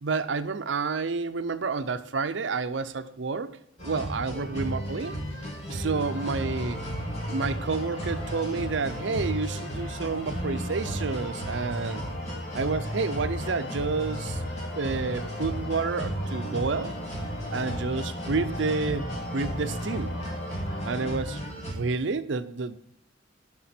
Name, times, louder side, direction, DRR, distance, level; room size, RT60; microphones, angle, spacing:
voice 1, 0.0-3.5 3.8-5.1 5.7-6.8 7.3-12.0 12.5-16.9 17.5-20.1 20.8-22.8, right 4 dB, 70° right, 13 dB, 0.6 m, -30 dB
sound 1, 3.8-21.7, equal, 35° left, 2.2 m, -34 dB
sound 2, 5.9-21.1, left 2 dB, 60° left, 1.5 m, -40 dB
11.5 x 6.1 x 4.4 m, 0.75 s
head